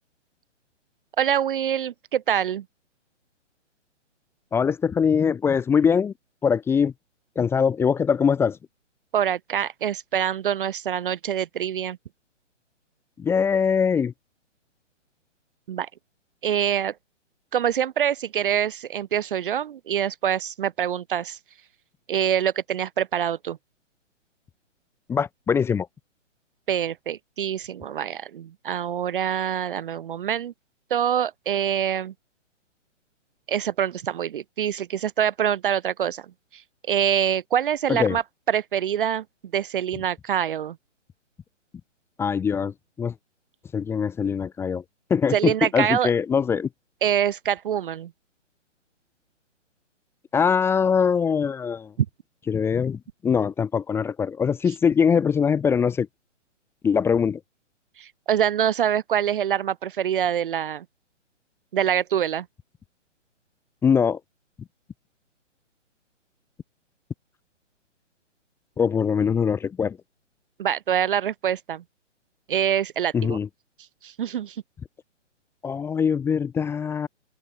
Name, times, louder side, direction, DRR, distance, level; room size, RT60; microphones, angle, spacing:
voice 1, 1.2-2.6 9.1-12.0 15.7-15.9 16.4-16.9 17.5-21.4 22.1-23.6 26.7-30.5 30.9-32.1 33.5-36.3 36.5-36.6 36.9-39.2 39.5-40.8 45.3-46.1 47.0-48.1 52.0-52.1 58.0-60.8 61.7-62.5 70.6-71.8 72.5-73.4 74.0-74.6, right 9 dB, 45° right, 0.8 m, -25 dB
voice 2, 4.5-6.1 6.4-6.9 7.4-8.6 13.2-14.1 25.1-25.9 37.9-38.2 42.2-43.1 43.7-44.8 45.1-46.7 50.3-51.9 52.5-56.1 56.8-57.4 63.8-64.2 68.8-70.0 73.1-73.5 75.6-77.1, left 6 dB, 5° left, 0.9 m, -22 dB
figure-of-eight pair, 135°, 37 cm